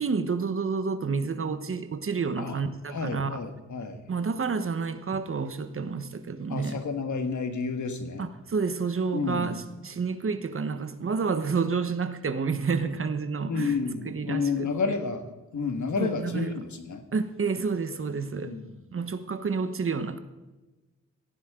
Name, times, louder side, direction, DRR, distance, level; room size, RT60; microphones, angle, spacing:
voice 1, 0.0-3.4 4.1-6.8 8.2-13.7 14.1-14.7 16.0-16.5 17.1-18.5 18.9-20.2, right 5 dB, 45° right, 10 dB, 1.1 m, -29 dB
voice 2, 2.9-4.0 6.5-8.3 9.1-9.6 13.5-17.0 18.4-18.7, left 4 dB, 70° left, 7 dB, 1.8 m, -31 dB
17.5 x 14.5 x 3.8 m, 1.1 s
wide cardioid pair, 140°, 31 cm